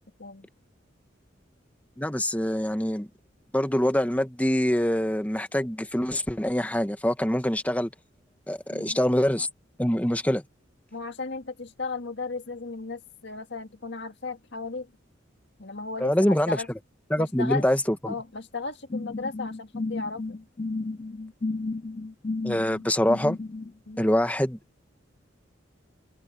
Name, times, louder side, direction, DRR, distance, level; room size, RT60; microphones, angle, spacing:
voice 1, 2.0-3.1 3.5-7.9 8.5-9.5 9.8-10.4 16.0-16.6 17.1-18.1 22.4-23.4 24.0-24.6, equal, 10° left, 1.1 m, -25 dB
voice 2, 10.9-14.9 15.6-16.7 17.2-17.6 18.1-20.4 23.9-24.1, left 4 dB, 60° left, 2.0 m, -35 dB
sound 1, 18.9-23.7, left 3 dB, 30° left, 0.4 m, -33 dB
head